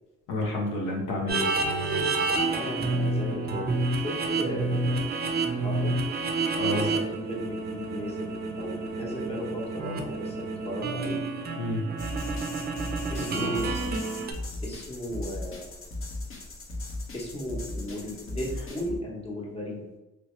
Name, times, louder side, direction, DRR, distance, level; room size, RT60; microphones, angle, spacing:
voice 1, 0.3-1.5 6.6-6.9 11.6-11.8 13.4-13.6, left 2 dB, 90° left, -1 dB, 0.8 m, -30 dB
sound 1, 1.3-14.3, right 3 dB, 35° right, 0.5 m, -29 dB
voice 2, 2.5-5.2 5.5-5.9 6.7-11.2 13.1-14.1 14.6-15.7 17.1-19.9, equal, 20° left, -2 dB, 1.0 m, -36 dB
sound 2, 12.0-19.0, left 1 dB, 45° left, 0.9 m, -37 dB
3.1 x 2.7 x 3.1 m, 1.0 s
cardioid pair, 90°, 30 cm